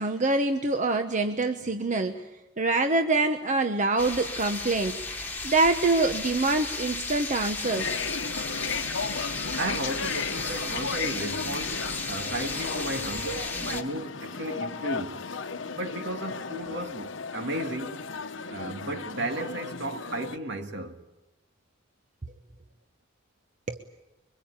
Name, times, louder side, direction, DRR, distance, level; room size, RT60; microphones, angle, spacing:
voice 1, 0.0-2.2 2.6-5.0 5.4-7.9 23.7-23.8, right 3 dB, 40° right, 1.1 m, -25 dB
sound 1, 4.0-13.8, left 3 dB, 10° left, 1.8 m, -34 dB
sound 2, 7.6-20.4, left 5 dB, 70° left, 1.1 m, -35 dB
voice 2, 9.6-15.3 15.7-18.0 18.5-21.0, right 1 dB, 60° right, 2.2 m, -34 dB
25.5 x 23.5 x 8.9 m
head